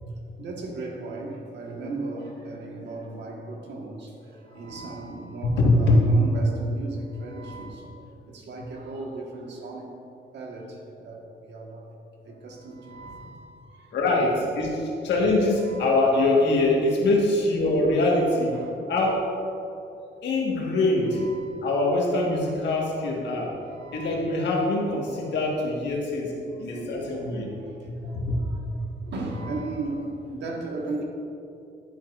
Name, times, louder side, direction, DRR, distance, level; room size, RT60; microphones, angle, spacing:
voice 1, 0.4-4.1 4.5-9.9 10.3-11.9 12.2-13.9 15.6-15.9 18.5-18.7 21.1-21.7 23.6-24.3 26.3-28.7 29.1-31.0, right 2 dB, 75° right, 0 dB, 1.5 m, -37 dB
voice 2, 5.6-6.0 13.9-18.6 18.9-19.2 20.2-21.2 21.6-23.5 23.9-27.5 27.8-28.4, left 2 dB, 75° left, -1 dB, 1.6 m, -23 dB
10.5 x 9.2 x 2.5 m, 2.7 s
cardioid pair, 115°, 18 cm